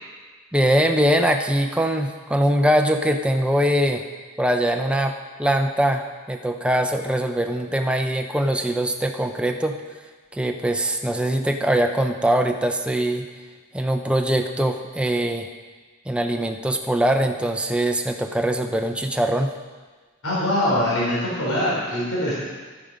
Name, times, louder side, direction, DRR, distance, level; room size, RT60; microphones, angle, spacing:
voice 1, 0.5-4.0 4.4-9.8 10.3-13.3 13.7-15.5 16.1-19.5, right 1 dB, 5° right, 5 dB, 0.6 m, -22 dB
voice 2, 20.2-22.3, left 1 dB, 85° left, -7 dB, 3.6 m, -23 dB
12.0 x 8.9 x 5.2 m, 1.4 s
head